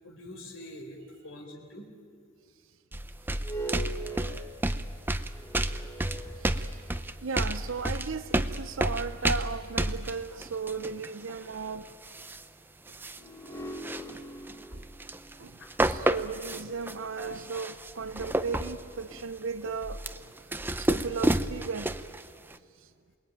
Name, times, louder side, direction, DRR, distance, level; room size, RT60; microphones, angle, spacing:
voice 1, 0.0-1.9 15.6-15.7 17.2-17.3, left 1 dB, 75° left, 4.3 m, -45 dB
sound 1, 2.9-12.4 12.9-13.2 13.5-15.3 15.6-22.2 22.5-22.6, right 1 dB, 10° right, 0.6 m, -30 dB
sound 2, 3.3-7.1 7.8-7.9 13.1-17.4, right 1 dB, 15° left, 1.5 m, -42 dB
voice 2, 7.2-11.9 14.7-14.8 15.4-15.5 15.8-20.0 20.8-21.9, right 5 dB, 75° right, 0.8 m, -35 dB
28.0 x 20.5 x 9.2 m
head